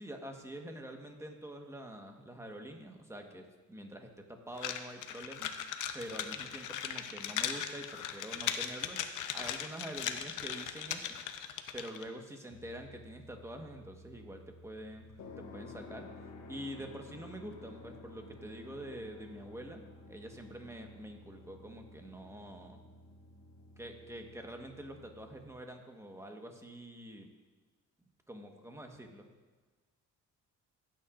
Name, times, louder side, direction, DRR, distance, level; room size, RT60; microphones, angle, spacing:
voice 1, 0.0-5.5 5.9-9.0 9.3-11.1 11.7-15.1 15.4-16.1 16.5-19.8 20.1-22.8 23.8-27.3 28.3-29.3, right 1 dB, 10° right, 3 dB, 1.3 m, -46 dB
sound 1, 4.6-12.1, left 9 dB, 85° left, 0.7 m, -38 dB
sound 2, 12.5-25.5, left 2 dB, 65° left, 1.4 m, -53 dB
16.0 x 9.0 x 2.5 m, 1.3 s
cardioid pair, 90°, 30 cm